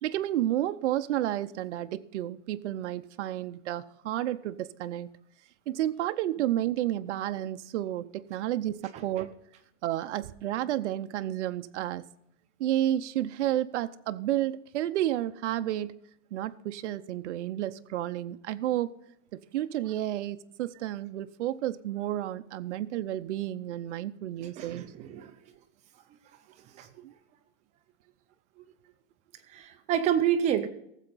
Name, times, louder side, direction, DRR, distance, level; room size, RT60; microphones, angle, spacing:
voice 1, 0.0-5.1 5.7-9.3 9.8-12.1 12.6-15.9 16.3-18.9 19.3-24.9 27.0-27.1, right 13 dB, 70° right, 0.7 m, -31 dB
voice 2, 8.9-9.3 24.4-25.3 26.7-27.1 29.5-30.7, right 9 dB, 20° right, 0.5 m, -29 dB
17.5 x 7.6 x 4.0 m
supercardioid pair, 160°, 36 cm